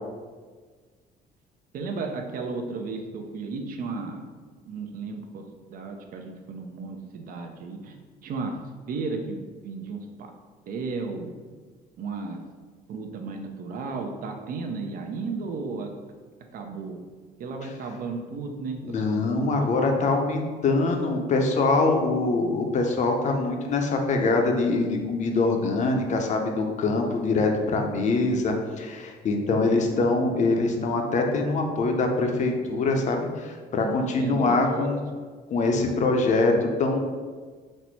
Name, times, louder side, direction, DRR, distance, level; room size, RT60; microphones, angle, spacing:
voice 1, 1.7-4.2 4.7-5.4 5.7-8.0 8.2-8.6 8.9-10.3 10.7-11.4 12.0-12.4 12.9-16.0 16.5-17.0 17.4-19.7 33.7-34.9, right 4 dB, 55° right, 4 dB, 0.6 m, -34 dB
voice 2, 18.9-35.0 35.5-37.0, left 3 dB, 45° left, 3 dB, 0.6 m, -24 dB
4.2 x 2.1 x 4.4 m, 1.5 s
cardioid pair, 110°, 17 cm